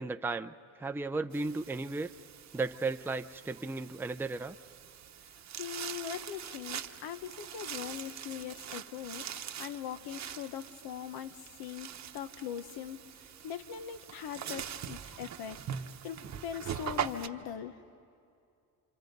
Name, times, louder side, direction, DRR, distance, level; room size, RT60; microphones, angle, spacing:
voice 1, 0.0-2.1 2.5-4.6, right 3 dB, 5° right, 8 dB, 0.5 m, -35 dB
sound 1, 1.3-17.3, right 8 dB, 45° right, 1.0 m, -43 dB
voice 2, 5.6-13.0 13.4-15.6 16.0-17.7, left 9 dB, 80° left, 11 dB, 1.1 m, -41 dB
29.0 x 26.0 x 5.3 m, 2.4 s
cardioid pair, 100°, 37 cm